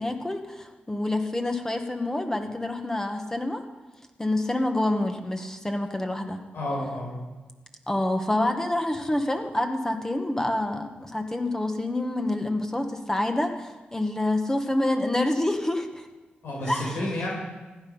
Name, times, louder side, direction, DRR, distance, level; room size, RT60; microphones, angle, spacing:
voice 1, 0.0-3.6 4.2-6.4 7.9-16.1 16.7-17.0, left 1 dB, 15° left, 4 dB, 1.5 m, -27 dB
voice 2, 6.5-7.1 16.4-17.3, left 1 dB, 85° left, -3 dB, 4.9 m, -30 dB
16.0 x 10.5 x 5.6 m, 1.2 s
cardioid pair, 70°, 4 cm